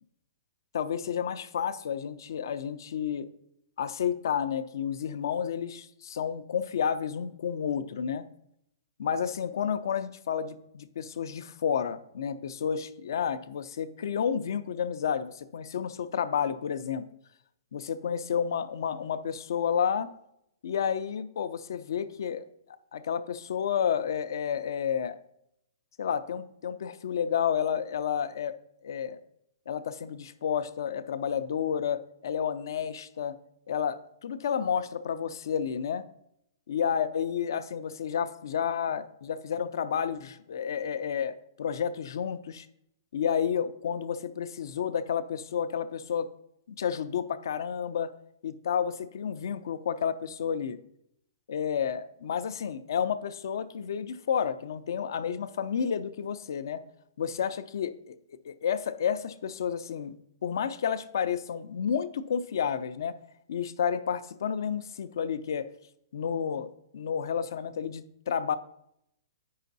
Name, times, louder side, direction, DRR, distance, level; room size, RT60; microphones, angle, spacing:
voice 1, 0.7-3.3 3.8-8.2 9.0-17.1 17.7-20.1 20.6-22.4 22.9-25.2 26.0-28.6 28.8-29.2 29.7-33.4 33.7-36.0 36.7-42.7 43.1-46.3 46.7-48.1 48.4-50.8 51.5-56.8 57.2-58.2 58.4-60.1 60.4-63.2 63.5-65.7 66.1-66.7 66.9-68.6, left 7 dB, 65° left, 11 dB, 0.6 m, -31 dB
8.3 x 5.6 x 4.0 m, 0.76 s
hypercardioid pair, 155°, 2 cm